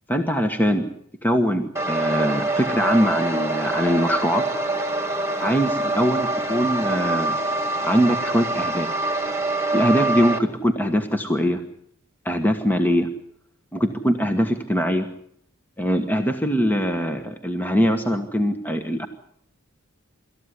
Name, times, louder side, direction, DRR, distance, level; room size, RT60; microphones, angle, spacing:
voice 1, 0.1-0.9 1.2-4.5 5.4-7.4 7.8-8.9 9.7-11.6 12.2-13.1 13.7-15.1 15.8-19.1, equal, 10° left, 6 dB, 1.3 m, -22 dB
sound 1, 1.8-10.4, right 2 dB, 10° right, 2.0 m, -25 dB
26.0 x 14.0 x 9.8 m, 0.70 s
head